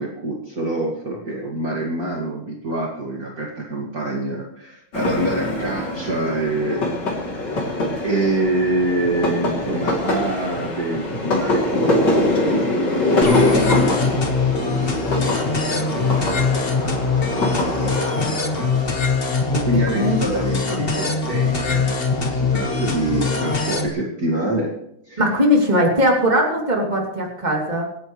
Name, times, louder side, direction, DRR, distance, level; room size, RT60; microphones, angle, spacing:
voice 1, 0.0-6.8 8.0-13.9 14.6-19.0 19.6-24.7 25.1-25.2, right 1 dB, 40° right, -2 dB, 2.4 m, -26 dB
sound 1, 4.9-20.4, left 2 dB, 50° left, 3.6 m, -24 dB
sound 2, 13.2-23.9, left 4 dB, 30° left, 1.5 m, -22 dB
voice 2, 25.2-27.8, equal, 20° right, -1 dB, 2.9 m, -19 dB
26.0 x 11.0 x 3.2 m, 0.75 s
omnidirectional pair, 2.4 m